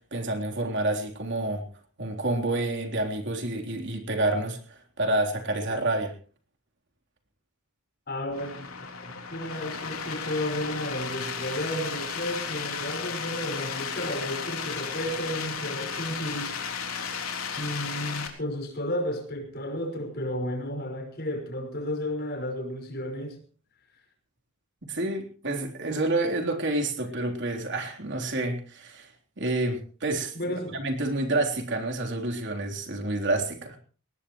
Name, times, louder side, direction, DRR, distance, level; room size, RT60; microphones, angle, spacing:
voice 1, 0.1-1.6 2.0-6.1 24.8-29.1 29.4-30.3 30.7-33.8, right 2 dB, 55° right, 3.6 m, -28 dB
voice 2, 8.1-8.7 9.0-16.9 17.6-23.4 30.3-30.8, left 1 dB, 50° left, 5.6 m, -33 dB
sound 1, 8.3-18.3, left 6 dB, 85° left, 3.6 m, -34 dB
20.5 x 19.0 x 3.1 m
head